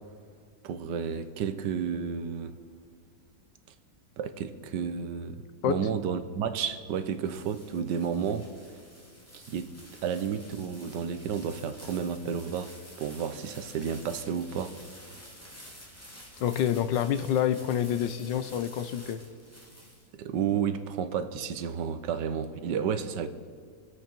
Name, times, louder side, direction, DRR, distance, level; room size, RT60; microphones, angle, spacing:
voice 1, 0.6-2.6 4.2-8.5 9.3-9.7 10.0-14.8 20.2-23.3, right 7 dB, 75° right, 1.4 m, -31 dB
sound 1, 6.8-20.4, equal, 10° left, 2.2 m, -50 dB
voice 2, 16.4-19.2, left 9 dB, 90° left, 1.4 m, -27 dB
24.5 x 8.3 x 4.5 m
omnidirectional pair, 1.9 m